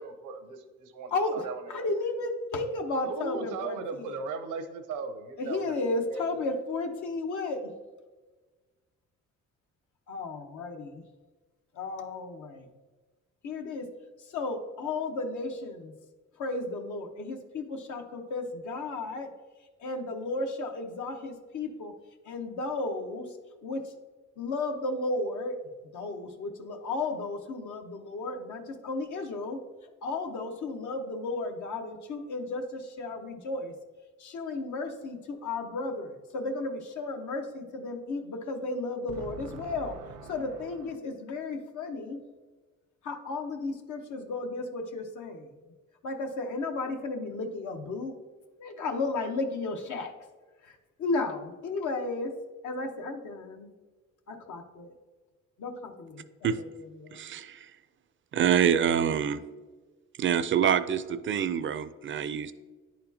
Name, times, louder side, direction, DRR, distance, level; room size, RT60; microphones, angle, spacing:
voice 1, 0.0-1.9 2.1-2.2 3.0-5.8 6.1-6.6 39.1-41.0, right 4 dB, 85° right, 7 dB, 0.8 m, -39 dB
voice 2, 1.7-4.1 5.4-7.7 10.1-11.0 11.7-12.7 13.4-13.9 14.3-15.9 16.4-19.3 19.8-21.9 22.2-23.3 23.6-23.8 24.4-25.6 25.9-29.6 30.0-33.7 34.2-39.9 40.3-42.2 43.0-45.5 46.0-48.2 48.6-50.1 50.6-52.3 52.6-53.7 54.3-54.9 55.6-56.7 57.0-57.2, left 3 dB, 75° left, 5 dB, 0.9 m, -34 dB
voice 3, 57.1-57.7 58.3-59.4 60.2-62.5, right 8 dB, 40° right, 14 dB, 0.4 m, -26 dB
10.5 x 4.3 x 2.7 m, 1.3 s
cardioid pair, 90°, 30 cm